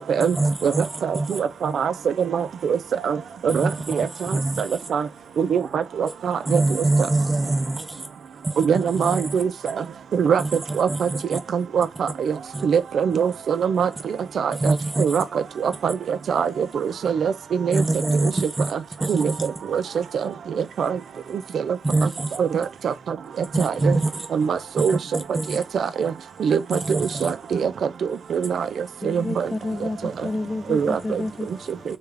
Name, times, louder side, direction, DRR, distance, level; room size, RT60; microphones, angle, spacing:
voice 1, 0.3-0.9 1.1-1.4 3.5-4.8 6.5-8.1 8.4-9.4 10.4-10.5 10.9-11.4 12.5-12.7 14.5-15.2 17.7-18.7 19.0-19.5 21.8-22.4 23.5-24.3 24.8-25.6 26.7-27.3, right 2 dB, 25° right, 0.6 m, -25 dB
voice 2, 1.4-1.9 2.3-2.8 3.0-3.2 3.4-3.7 3.9-4.1 4.9-5.0 5.4-6.6 8.6-9.5 10.1-10.4 10.8-11.1 11.5-12.3 12.6-13.9 14.4-14.5 15.0-15.2 15.6-16.0 16.3-17.3 17.6-17.8 19.1-19.3 19.7-19.8 20.8-21.0 22.4-22.9 23.6-24.0 24.3-25.0 25.7-26.1 26.4-26.8 27.2-27.7 28.3-28.6 29.0-29.5 30.7-31.0, right 7 dB, 80° right, 0.4 m, -22 dB
voice 3, 29.0-31.8, left 2 dB, 30° left, 0.4 m, -30 dB
3.3 x 2.3 x 3.4 m
wide cardioid pair, 110°, 0 cm